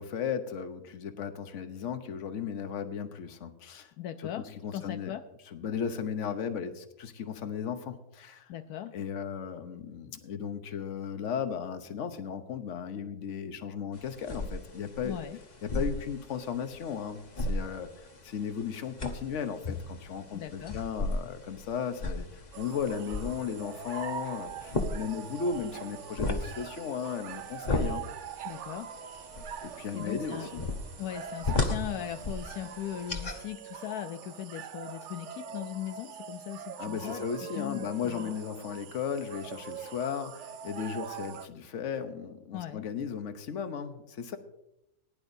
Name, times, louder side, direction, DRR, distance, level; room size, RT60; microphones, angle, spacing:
voice 1, 0.0-3.9 4.2-4.3 4.6-5.1 5.5-8.5 8.9-15.2 15.6-28.0 29.6-30.6 36.8-44.4, left 7 dB, 55° left, 8 dB, 1.2 m, -35 dB
voice 2, 4.0-5.2 8.5-8.9 15.0-15.4 20.3-20.8 28.4-28.9 29.9-30.5 31.0-37.2 37.5-38.3 42.5-42.9, left 12 dB, 80° left, 8 dB, 1.1 m, -39 dB
sound 1, 13.9-33.4, left 2 dB, 30° left, 1.0 m, -36 dB
sound 2, 22.5-41.5, right 8 dB, 60° right, 0.8 m, -43 dB
19.5 x 10.5 x 2.7 m, 0.85 s
omnidirectional pair, 1.6 m